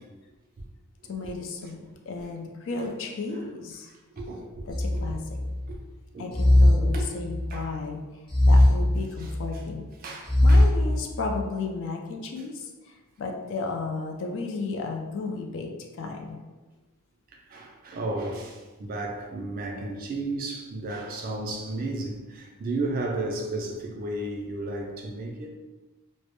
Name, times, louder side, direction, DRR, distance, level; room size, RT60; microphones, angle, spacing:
voice 1, 1.1-3.9 4.7-5.2 6.2-8.0 8.5-9.9 10.4-15.7 16.0-16.4, left 3 dB, 55° left, 3 dB, 0.3 m, -34 dB
voice 2, 4.1-4.6 5.7-5.8 6.1-6.4 6.9-7.1 7.5-7.7 9.2-9.3 10.0-10.7 17.5-25.5, right 2 dB, 40° right, 0 dB, 0.3 m, -33 dB
sound 1, 4.7-5.7 6.3-7.6 8.3-9.6 10.3-11.4, left 1 dB, 25° left, 0.7 m, -20 dB
2.1 x 2.0 x 2.9 m, 1.2 s
head